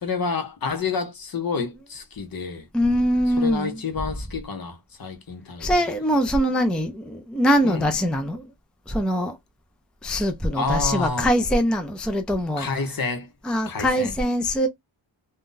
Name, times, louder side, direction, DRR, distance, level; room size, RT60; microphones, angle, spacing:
voice 1, 0.0-2.7 3.4-5.7 7.6-7.9 10.5-11.3 12.6-13.3 13.6-14.1, left 4 dB, 50° left, 0.8 m, -29 dB
voice 2, 2.7-3.8 5.6-8.5 8.9-9.4 10.0-12.7 13.4-14.7, equal, ahead, 0.4 m, -23 dB
2.6 x 2.2 x 3.7 m
wide cardioid pair, 115°, 47 cm